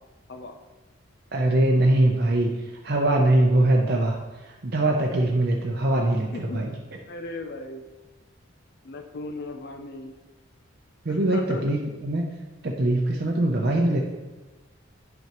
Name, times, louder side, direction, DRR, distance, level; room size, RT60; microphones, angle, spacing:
voice 1, 1.3-6.7 11.0-12.3 12.6-14.0, right 1 dB, 50° right, 0 dB, 0.6 m, -22 dB
voice 2, 6.3-6.7 7.1-7.9 8.8-10.1 11.1-11.7, left 2 dB, 50° left, 6 dB, 0.4 m, -37 dB
9.1 x 5.6 x 3.0 m, 1.2 s
head